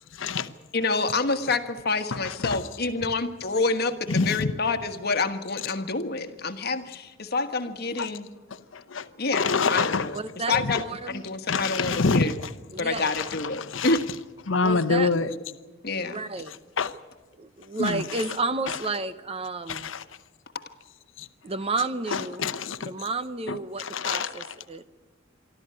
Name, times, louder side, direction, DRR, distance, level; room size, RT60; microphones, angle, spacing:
voice 1, 0.2-0.5 2.2-2.6 4.1-4.5 8.0-8.1 8.7-9.1 9.3-10.1 11.5-12.5 13.1-13.9 14.5-15.3 16.8-16.9 17.8-18.0 18.7-18.8 19.7-20.0 21.2-21.3 22.1-22.9 23.5-24.5, left 4 dB, 75° left, 0.8 m, -26 dB
voice 2, 0.7-8.3 9.2-10.2 10.5-12.3 12.8-14.0 15.8-16.2, left 3 dB, 55° left, 1.5 m, -27 dB
voice 3, 10.1-11.2 12.7-13.3 14.5-15.1 16.0-16.5 17.7-19.9 21.4-22.5 22.8-24.8, right 3 dB, 30° right, 0.8 m, -31 dB
24.5 x 13.5 x 9.7 m
head